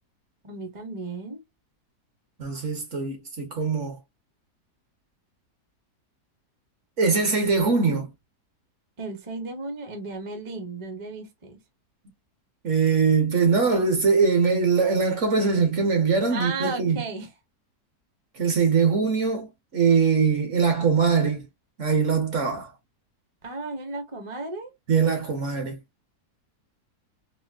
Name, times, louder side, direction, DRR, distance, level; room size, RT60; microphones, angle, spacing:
voice 1, 0.4-1.4 9.0-11.6 16.3-17.3 23.4-24.7, right 3 dB, 25° right, 0.7 m, -34 dB
voice 2, 2.4-4.0 7.0-8.1 12.6-17.0 18.4-21.5 21.8-22.7 24.9-25.8, right 5 dB, 55° right, 1.2 m, -22 dB
4.3 x 2.1 x 2.3 m
omnidirectional pair, 1.7 m